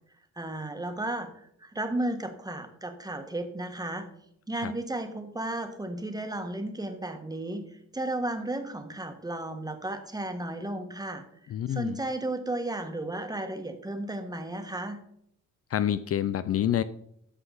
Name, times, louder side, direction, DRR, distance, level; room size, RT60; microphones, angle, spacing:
voice 1, 0.4-4.1 4.5-15.0, right 1 dB, 10° right, 6 dB, 1.4 m, -34 dB
voice 2, 11.5-12.0 15.7-16.8, left 10 dB, 50° left, 14 dB, 0.5 m, -27 dB
13.0 x 5.9 x 4.0 m, 0.71 s
cardioid pair, 90°, 30 cm